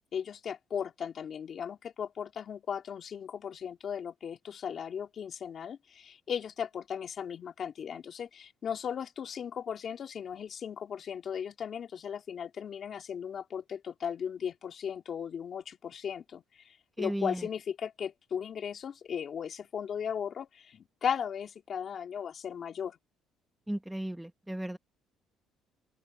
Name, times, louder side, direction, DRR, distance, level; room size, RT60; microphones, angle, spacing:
voice 1, 0.1-23.0, left 8 dB, 45° left, 2.9 m, -37 dB
voice 2, 17.0-17.4 23.7-24.8, right 1 dB, 5° right, 1.4 m, -35 dB
open air
cardioid pair, 125°, 0 cm